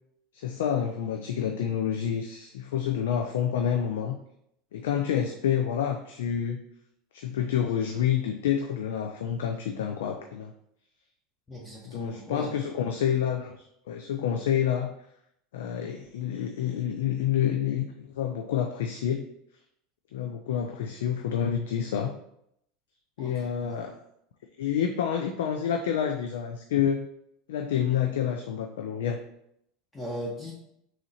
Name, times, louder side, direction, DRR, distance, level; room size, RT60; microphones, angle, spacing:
voice 1, 0.3-4.2 4.7-6.6 7.1-10.5 11.8-14.9 15.5-19.2 20.1-22.1 23.2-24.0 24.6-27.1 27.5-29.2, left 9 dB, 90° left, 4 dB, 0.4 m, -28 dB
voice 2, 11.5-12.6 23.2-23.8 29.9-30.5, equal, 20° left, -4 dB, 1.0 m, -38 dB
3.7 x 3.2 x 4.1 m, 0.76 s
supercardioid pair, 115°, 0 cm